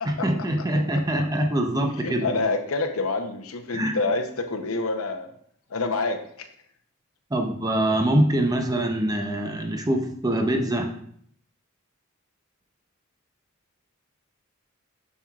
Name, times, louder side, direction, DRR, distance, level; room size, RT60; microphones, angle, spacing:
voice 1, 0.0-2.3 3.7-3.9 7.3-10.9, right 1 dB, 15° right, 3 dB, 0.7 m, -24 dB
voice 2, 2.0-5.3 5.7-6.5, left 3 dB, 80° left, 6 dB, 0.8 m, -27 dB
7.1 x 6.3 x 2.4 m, 0.63 s
head